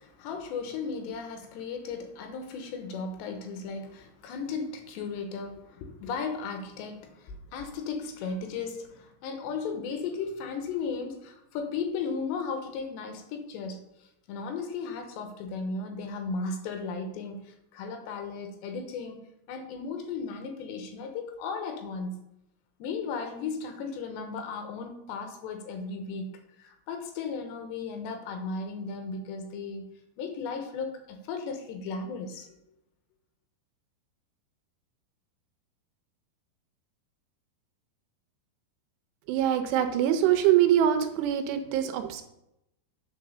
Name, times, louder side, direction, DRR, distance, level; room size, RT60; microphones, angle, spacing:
voice 1, 0.0-13.8 14.3-19.2 19.5-22.2 22.8-29.9 30.2-32.5, left 4 dB, 80° left, 6 dB, 3.2 m, -35 dB
voice 2, 39.3-42.2, right 10 dB, 80° right, 7 dB, 2.8 m, -24 dB
8.4 x 5.7 x 6.7 m, 0.84 s
omnidirectional pair, 5.1 m